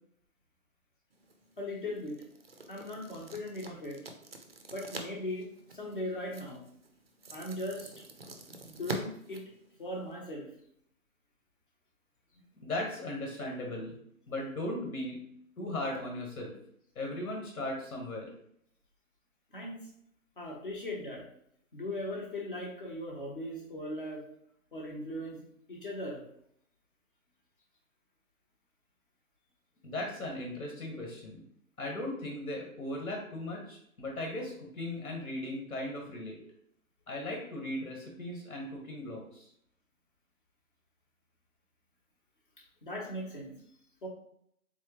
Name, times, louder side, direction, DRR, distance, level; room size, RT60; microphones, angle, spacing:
sound 1, 1.1-10.2, right 2 dB, 45° right, 0.4 m, -46 dB
voice 1, 1.6-2.1 2.7-4.0 4.7-5.5 5.7-6.6 7.3-7.9 8.6-9.4 9.8-10.5 19.5-19.9 20.4-21.2 21.7-24.2 24.7-25.4 25.7-26.2 42.8-43.5 44.0-44.1, left 1 dB, 35° left, -1 dB, 0.8 m, -38 dB
voice 2, 12.6-14.0 14.3-15.2 15.6-16.5 16.9-18.3 29.8-31.4 31.8-36.4 37.1-39.5, left 1 dB, 75° left, 1 dB, 1.2 m, -37 dB
3.6 x 2.9 x 2.9 m, 0.70 s
hypercardioid pair, 170°, 44 cm